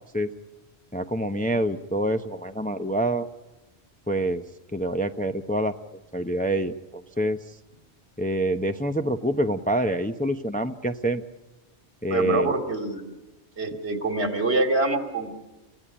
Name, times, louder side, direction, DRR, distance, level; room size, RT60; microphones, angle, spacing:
voice 1, 0.9-3.3 4.1-4.4 4.7-5.8 6.1-7.4 8.2-11.2 12.0-12.5, right 1 dB, 10° left, 7 dB, 0.7 m, -26 dB
voice 2, 12.1-13.1 13.6-15.3, right 2 dB, 75° right, 4 dB, 2.8 m, -25 dB
28.0 x 16.0 x 10.0 m, 1.1 s
omnidirectional pair, 1.1 m